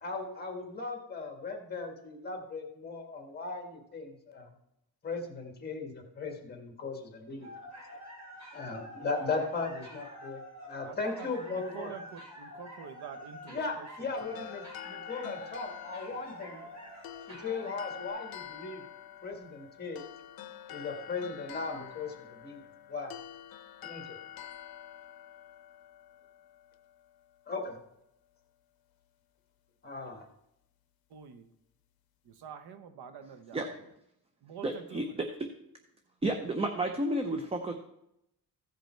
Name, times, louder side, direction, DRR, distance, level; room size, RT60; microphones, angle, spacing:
voice 1, 0.0-4.5 5.0-7.5 8.5-10.4 10.7-11.9 13.5-16.7 17.3-18.8 19.2-20.1 20.7-22.6 22.9-23.1 23.8-24.2 27.5-27.7 29.8-30.2, left 4 dB, 25° left, 3 dB, 1.7 m, -37 dB
sound 1, 7.4-18.1, equal, 40° right, 4.5 m, -48 dB
voice 2, 10.8-14.5 16.1-16.3 31.1-31.5 32.2-33.9 34.4-35.2, right 7 dB, 70° right, 9 dB, 1.0 m, -47 dB
sound 2, 14.2-27.4, left 11 dB, 65° left, 0.7 m, -47 dB
voice 3, 34.6-35.3 36.2-37.7, right 1 dB, 15° right, 5 dB, 0.6 m, -31 dB
15.5 x 5.3 x 4.5 m, 0.82 s
cardioid pair, 165°, 39 cm